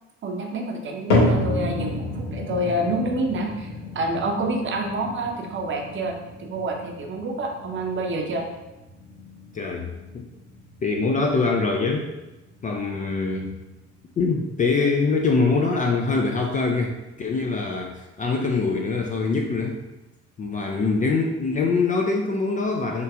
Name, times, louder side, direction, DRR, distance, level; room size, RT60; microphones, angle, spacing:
voice 1, 0.2-8.5, right 1 dB, 35° right, 1 dB, 0.7 m, -28 dB
sound 1, 1.1-17.4 17.7-18.3 18.9-19.0 19.8-19.9, left 1 dB, 80° left, 0.9 m, -31 dB
voice 2, 9.5-9.9 10.1-10.3 10.8-12.1 12.6-13.5 14.2-19.8 20.4-23.0, left 4 dB, 20° left, 1 dB, 0.4 m, -23 dB
5.5 x 3.2 x 2.3 m, 1.0 s
figure-of-eight pair, 50°, 36 cm